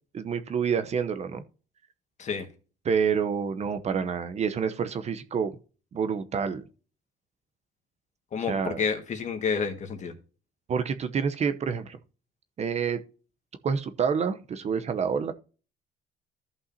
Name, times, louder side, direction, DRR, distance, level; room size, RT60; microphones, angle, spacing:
voice 1, 0.1-1.4 2.8-5.5 5.9-6.6 8.5-8.8 10.7-12.0 12.6-13.0 13.6-15.3, right 6 dB, 40° right, 0.8 m, -28 dB
voice 2, 8.3-10.1, left 6 dB, 45° left, 1.7 m, -29 dB
14.0 x 5.5 x 2.8 m
cardioid pair, 110°, 17 cm